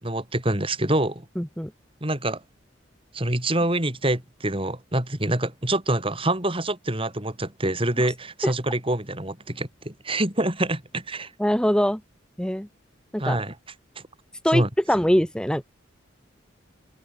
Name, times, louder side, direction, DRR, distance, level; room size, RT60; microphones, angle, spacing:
voice 1, 0.0-1.3 2.0-2.4 3.1-11.3 13.2-13.5 14.0-14.1 14.5-14.7, right 1 dB, 30° right, 5.3 m, -26 dB
voice 2, 1.4-1.7 8.4-8.5 11.4-12.0 12.4-12.7 13.1-13.4 14.4-14.6 14.9-15.6, equal, 5° left, 1.3 m, -22 dB
head